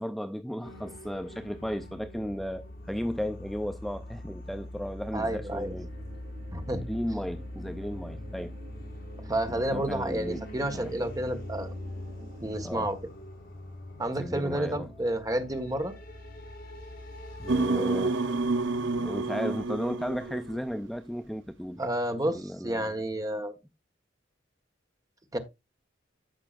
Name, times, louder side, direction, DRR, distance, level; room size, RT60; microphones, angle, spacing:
voice 1, 0.0-5.9 6.7-8.5 9.5-10.4 10.7-10.9 12.6-12.9 14.2-14.9 17.4-18.4 18.8-21.8 22.3-23.0, equal, ahead, 0.4 m, -35 dB
sound 1, 0.6-17.7, left 1 dB, 55° left, 4.5 m, -43 dB
voice 2, 5.1-5.7 6.5-6.8 9.3-11.7 12.4-13.0 14.0-15.9 17.7-18.0 21.8-23.5 25.3-25.4, right 1 dB, 20° right, 1.4 m, -30 dB
sound 2, 5.6-12.7, right 2 dB, 60° right, 2.8 m, -50 dB
sound 3, 17.5-20.8, right 3 dB, 85° right, 0.9 m, -29 dB
13.0 x 5.9 x 2.4 m
head